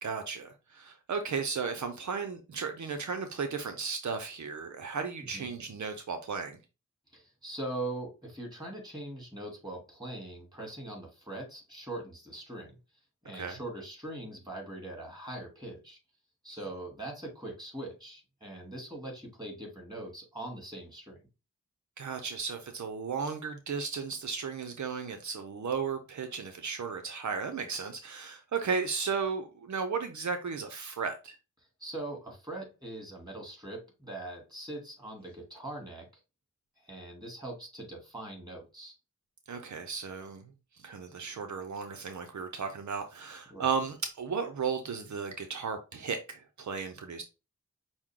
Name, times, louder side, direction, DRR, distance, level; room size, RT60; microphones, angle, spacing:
voice 1, 0.0-6.6 13.3-13.6 22.0-31.4 39.5-40.4 40.8-47.2, right 5 dB, 75° right, 0.7 m, -35 dB
voice 2, 7.1-12.8 13.2-16.0 16.4-21.2 31.8-36.1 36.8-38.9 43.5-43.7, right 1 dB, 15° right, 3.0 m, -41 dB
6.1 x 2.2 x 3.7 m
cardioid pair, 45°, 29 cm